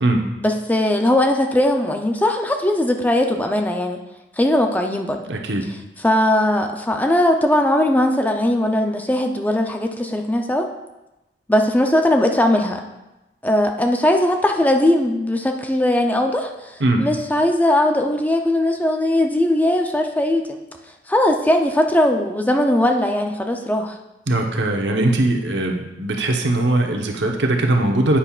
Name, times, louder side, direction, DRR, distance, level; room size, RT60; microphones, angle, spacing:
voice 1, 0.4-4.0 4.4-5.2 6.0-10.7 11.5-12.8 13.4-20.6 21.1-24.0, left 1 dB, 10° left, 3 dB, 0.6 m, -19 dB
voice 2, 5.2-5.7 16.8-17.1 24.3-28.2, right 2 dB, 85° right, 2 dB, 1.1 m, -20 dB
10.0 x 8.9 x 2.4 m, 0.98 s
head